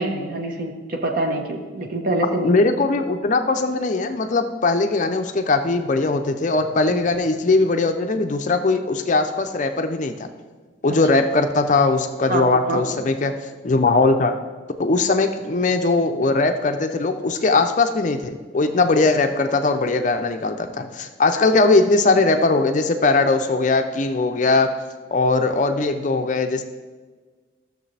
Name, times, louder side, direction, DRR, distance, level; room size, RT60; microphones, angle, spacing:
voice 1, 0.0-2.5 6.9-7.0 12.3-12.8, right 2 dB, 45° right, 2 dB, 1.1 m, -25 dB
voice 2, 2.4-10.3 10.8-13.3 13.6-14.4 14.8-24.7 25.1-26.6, left 3 dB, 40° left, 7 dB, 0.5 m, -20 dB
13.5 x 6.6 x 3.3 m, 1.4 s
head